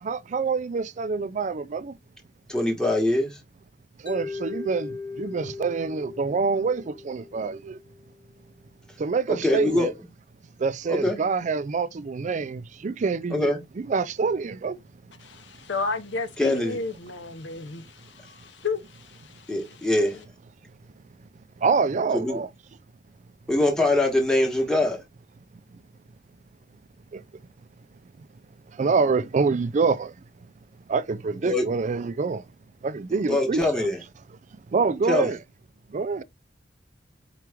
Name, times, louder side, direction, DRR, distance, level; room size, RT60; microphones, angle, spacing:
voice 1, 0.0-2.0 4.0-7.8 9.0-9.9 10.6-14.8 21.6-22.5 27.1-27.2 28.2-28.3 28.7-30.2 30.9-32.4 32.8-33.9 34.7-35.4 35.9-36.2, right 4 dB, 40° right, 0.4 m, -26 dB
voice 2, 2.5-3.4 9.3-9.9 10.9-11.2 13.3-13.6 16.4-16.8 19.5-20.2 22.1-22.4 23.5-25.0 31.4-31.7 33.3-34.0 35.1-35.3, left 1 dB, 5° left, 1.1 m, -23 dB
Mallet percussion, 4.1-8.2, left 4 dB, 30° left, 1.0 m, -38 dB
voice 3, 15.2-19.3 19.6-19.9, left 4 dB, 80° left, 0.8 m, -33 dB
4.8 x 3.0 x 3.4 m
head